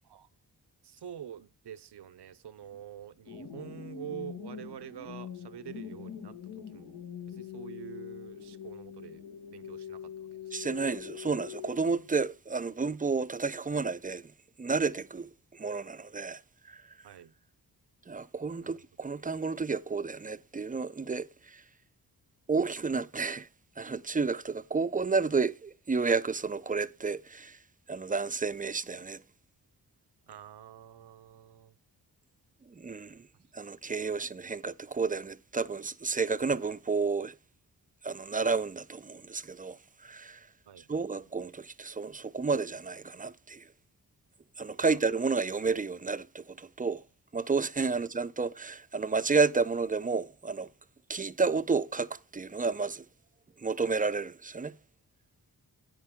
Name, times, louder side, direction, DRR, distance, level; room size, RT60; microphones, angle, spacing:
voice 1, 0.8-10.3 17.0-17.3 18.6-18.8 30.3-31.8 33.8-34.2 40.7-41.0 44.8-45.0 47.9-48.1, right 10 dB, 75° right, 0.8 m, -46 dB
sound 1, 3.3-12.2, left 9 dB, 75° left, 1.6 m, -44 dB
voice 2, 10.5-14.3 14.6-16.8 18.1-21.6 22.5-23.5 23.8-27.6 27.9-29.2 32.7-33.3 33.5-37.3 38.0-40.5 40.8-43.7 44.6-47.0 47.3-50.7 51.1-53.0 53.6-54.8, right 4 dB, 20° right, 0.5 m, -31 dB
10.5 x 8.5 x 3.6 m
cardioid pair, 60°, 40 cm